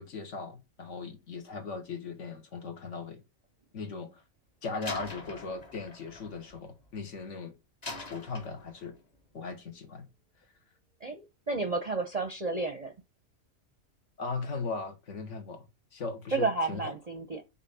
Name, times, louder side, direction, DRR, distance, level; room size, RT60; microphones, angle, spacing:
voice 1, 0.0-3.2 3.7-4.2 4.6-7.5 8.0-9.0 9.3-10.1 14.2-15.6 15.9-16.9, left 4 dB, 65° left, 1.5 m, -38 dB
Slam, 4.8-7.2 7.8-9.1, left 3 dB, 30° left, 1.2 m, -43 dB
voice 2, 11.0-12.9 16.3-17.4, right 3 dB, 40° right, 0.6 m, -31 dB
5.6 x 3.8 x 5.4 m
omnidirectional pair, 1.4 m